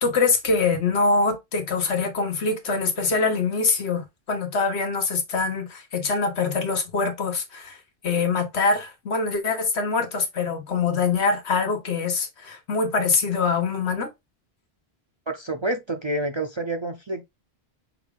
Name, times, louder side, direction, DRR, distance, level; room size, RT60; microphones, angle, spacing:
voice 1, 0.0-14.1, left 4 dB, 85° left, 1.3 m, -24 dB
voice 2, 15.3-17.2, right 1 dB, 35° right, 0.5 m, -28 dB
5.7 x 2.4 x 3.5 m
omnidirectional pair, 1.1 m